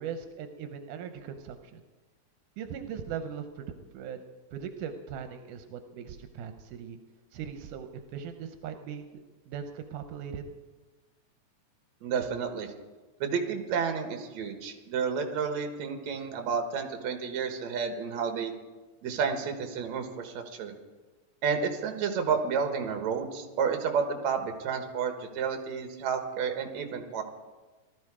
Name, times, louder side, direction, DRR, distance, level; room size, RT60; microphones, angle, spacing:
voice 1, 0.0-1.8 2.6-4.2 4.5-7.0 7.3-9.2 9.5-10.5, right 7 dB, 85° right, 7 dB, 2.4 m, -39 dB
voice 2, 12.0-12.7 13.2-18.5 19.0-20.7 21.4-27.2, right 6 dB, 65° right, 6 dB, 2.6 m, -31 dB
18.5 x 13.0 x 4.9 m, 1.3 s
omnidirectional pair, 3.6 m